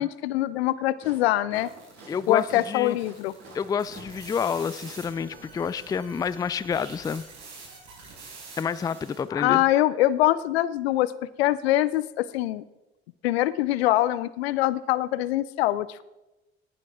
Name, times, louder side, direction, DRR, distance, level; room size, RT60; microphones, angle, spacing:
voice 1, 0.0-1.7 2.3-3.3 9.3-11.1 11.4-12.6 13.2-16.0, left 15 dB, 70° left, 18 dB, 0.6 m, -24 dB
sound 1, 1.0-5.9, right 3 dB, 45° right, 5.3 m, -48 dB
sound 2, 1.6-9.3, right 4 dB, 60° right, 4.5 m, -47 dB
voice 2, 2.1-3.0 3.5-7.2 8.6-9.6, left 6 dB, 10° left, 17 dB, 0.4 m, -29 dB
18.0 x 11.5 x 3.6 m, 1.0 s
figure-of-eight pair, 55°, 32 cm